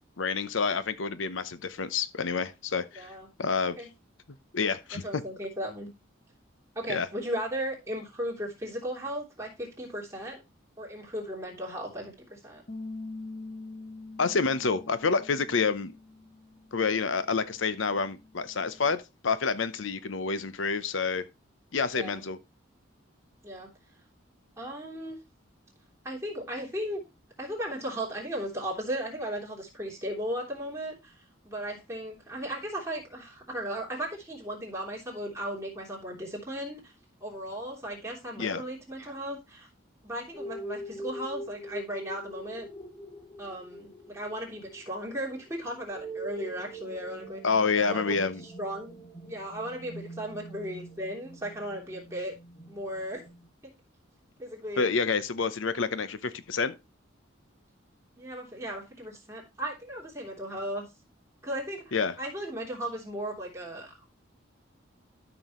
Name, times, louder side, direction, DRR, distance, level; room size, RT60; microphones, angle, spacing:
voice 1, 0.2-3.1 3.4-3.9 4.5-5.0 6.9-7.1 14.2-15.9 16.7-21.2 21.7-22.4 38.4-38.6 47.4-48.4 54.8-56.7 61.9-62.1, left 5 dB, 75° left, 0.8 m, -28 dB
voice 2, 2.9-3.3 3.8-3.9 4.9-5.9 6.7-10.4 10.8-12.6 21.9-22.2 23.4-23.7 24.6-25.2 26.0-27.0 27.4-31.2 31.4-36.9 37.2-39.7 40.0-42.7 43.4-47.4 47.7-48.2 48.4-48.9 49.2-52.4 52.7-53.3 53.6-53.7 54.4-54.9 58.2-60.9 61.4-64.1, equal, 15° right, 3.2 m, -36 dB
Bass guitar, 12.7-18.9, left 2 dB, 40° left, 0.9 m, -45 dB
sound 1, 40.3-53.5, right 1 dB, 20° left, 2.2 m, -43 dB
13.0 x 6.2 x 3.1 m
head